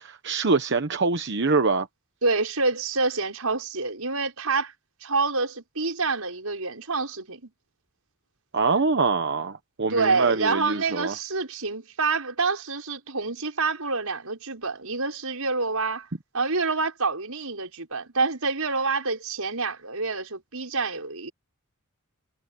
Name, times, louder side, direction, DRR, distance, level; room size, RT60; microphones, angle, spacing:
voice 1, 0.0-1.9 8.5-11.1, right 4 dB, 55° right, 1.0 m, -24 dB
voice 2, 2.2-4.7 5.0-7.5 9.9-16.1 16.3-21.3, right 4 dB, 80° right, 5.9 m, -27 dB
head